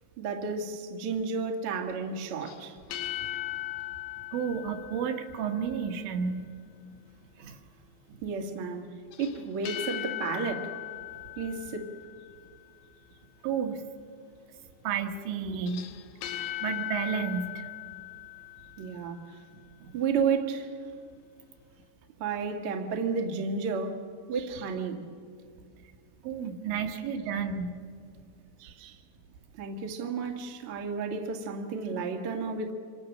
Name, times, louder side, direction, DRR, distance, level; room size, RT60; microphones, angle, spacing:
voice 1, 0.2-2.8 8.2-8.8 9.2-10.7 11.4-11.9 18.8-19.4 19.9-20.7 22.2-24.0 24.3-25.0 26.9-27.0 28.6-29.0 29.6-32.7, right 5 dB, 55° right, 1.6 m, -32 dB
sound 1, 2.4-5.7 9.1-12.4 15.5-19.1, left 15 dB, 75° left, 3.1 m, -38 dB
voice 2, 4.3-6.5 7.4-7.6 13.4-13.8 14.8-15.9 16.2-17.7 19.8-20.0 26.2-27.8, right 6 dB, 70° right, 3.5 m, -32 dB
27.0 x 26.0 x 6.3 m
omnidirectional pair, 5.7 m